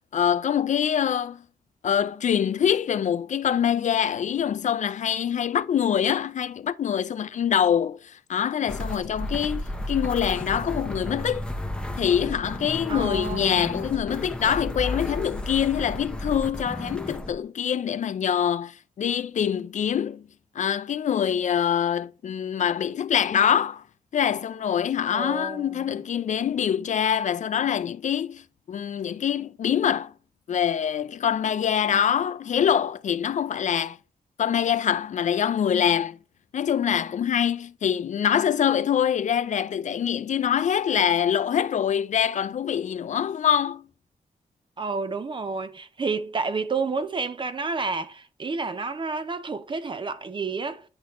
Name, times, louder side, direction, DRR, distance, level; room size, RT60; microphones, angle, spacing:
voice 1, 0.1-1.4 1.8-11.4 12.0-20.2 20.6-23.8 24.1-28.4 28.7-30.1 30.5-34.0 34.4-36.2 36.5-43.8, left 8 dB, 55° left, 0.4 m, -24 dB
sound 1, 8.7-17.3, left 1 dB, 5° left, 0.8 m, -33 dB
voice 2, 12.9-13.6 25.1-26.0 44.8-50.8, right 4 dB, 35° right, 0.6 m, -30 dB
9.6 x 4.1 x 3.0 m
wide cardioid pair, 115°, 15 cm